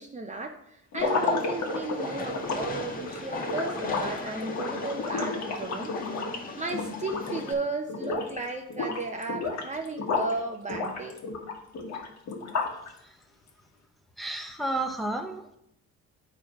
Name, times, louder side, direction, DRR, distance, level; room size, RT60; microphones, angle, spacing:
voice 1, 0.0-5.9 6.6-11.2, right 3 dB, 25° right, 3 dB, 0.7 m, -34 dB
sound 1, 0.9-7.6 7.9-8.4 8.7-10.3 10.7-12.9, left 4 dB, 65° left, 1.5 m, -31 dB
Train, 1.0-7.5, left 3 dB, 30° left, 1.3 m, -39 dB
voice 2, 14.2-15.6, right 2 dB, ahead, 4 dB, 1.0 m, -32 dB
9.0 x 4.5 x 4.7 m, 0.79 s
cardioid pair, 90°, 30 cm